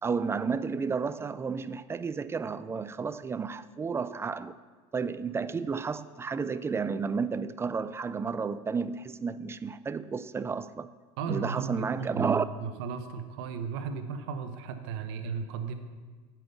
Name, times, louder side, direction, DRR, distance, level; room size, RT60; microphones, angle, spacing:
voice 1, 0.0-4.6 4.9-10.9 11.3-12.5, right 5 dB, 15° right, 0.3 m, -32 dB
voice 2, 11.2-15.7, right 6 dB, 70° right, 0.9 m, -35 dB
8.9 x 5.8 x 6.9 m
hypercardioid pair, 90°, 15 cm